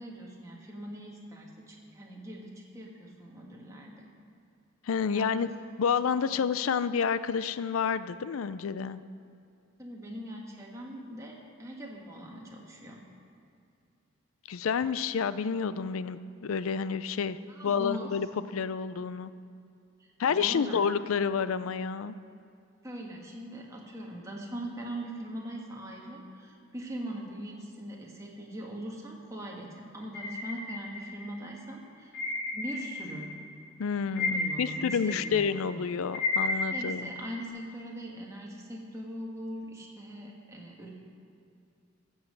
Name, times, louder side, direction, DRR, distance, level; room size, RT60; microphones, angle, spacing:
voice 1, 0.0-4.1 5.1-5.4 9.8-11.3 11.6-13.0 17.5-18.1 20.3-20.8 22.8-32.1 32.5-33.3 34.3-35.6 36.7-40.9, equal, 15° right, -2 dB, 1.6 m, -41 dB
voice 2, 4.9-5.5 5.8-9.0 14.5-17.4 17.6-19.3 20.2-22.2 33.8-37.1, left 6 dB, 85° left, 14 dB, 0.4 m, -29 dB
sound 1, 30.1-31.4 32.1-33.4 33.7-37.5, left 2 dB, 60° left, 1.5 m, -33 dB
15.0 x 5.6 x 7.7 m, 2.5 s
head